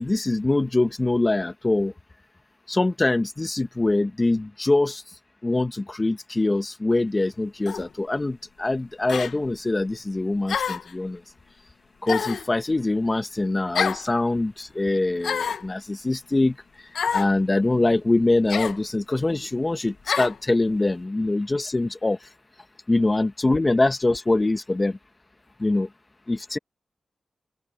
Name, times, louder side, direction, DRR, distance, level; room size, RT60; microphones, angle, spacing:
voice 1, 0.0-1.9 2.7-5.0 5.4-11.2 12.0-16.6 17.1-22.2 22.9-25.0 25.6-25.9 26.3-26.6, left 2 dB, 30° left, 1.7 m, -23 dB
sound 1, 7.7-7.9 9.1-9.3 10.5-10.9 12.1-12.5 13.7-14.1 15.2-15.7 16.9-17.3 18.5-18.8 20.1-20.4, left 6 dB, 85° left, 1.2 m, -27 dB
open air
cardioid pair, 45°, 0 cm